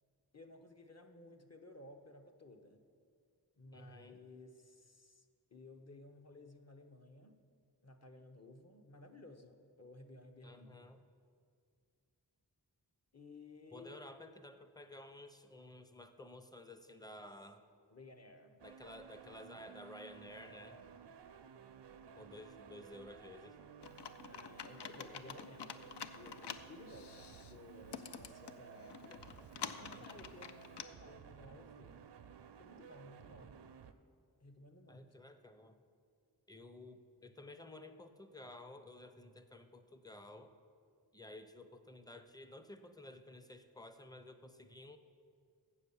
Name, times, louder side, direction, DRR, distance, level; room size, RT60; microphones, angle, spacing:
voice 1, 0.3-2.8 3.6-7.4 7.8-10.8 13.1-14.0 17.9-18.6 20.9-21.2 24.3-29.5 29.8-32.1 32.6-33.6 34.4-35.2, left 2 dB, 40° left, 5 dB, 0.8 m, -56 dB
voice 2, 3.7-4.2 10.4-11.0 13.7-17.7 18.6-20.8 22.2-23.6 29.6-30.0 34.9-35.8 36.5-40.5 41.1-45.0, left 1 dB, 10° left, 9 dB, 0.6 m, -53 dB
sound 1, 18.6-33.9, right 7 dB, 80° right, 0.5 m, -56 dB
Computer keyboard, 23.8-30.8, left 7 dB, 75° left, 0.5 m, -49 dB
7.8 x 7.0 x 7.0 m, 2.2 s
wide cardioid pair, 45°, 41 cm